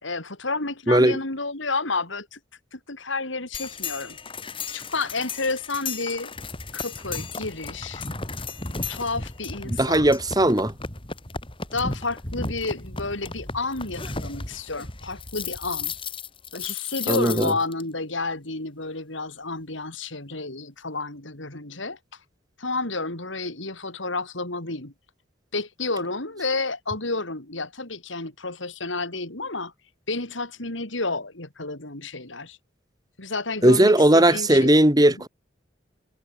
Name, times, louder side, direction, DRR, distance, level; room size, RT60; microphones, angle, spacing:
voice 1, 0.0-2.4 2.7-4.2 4.7-6.3 6.7-8.1 8.7-10.2 11.7-15.9 16.5-22.0 22.6-24.9 25.5-29.7 30.1-32.6 33.2-35.2, left 3 dB, 75° left, 4.5 m, -31 dB
voice 2, 0.9-1.2 9.7-10.7 17.1-17.5 33.6-35.3, right 1 dB, 20° right, 2.3 m, -18 dB
sound 1, 3.5-17.8, left 4 dB, 25° left, 3.0 m, -34 dB
head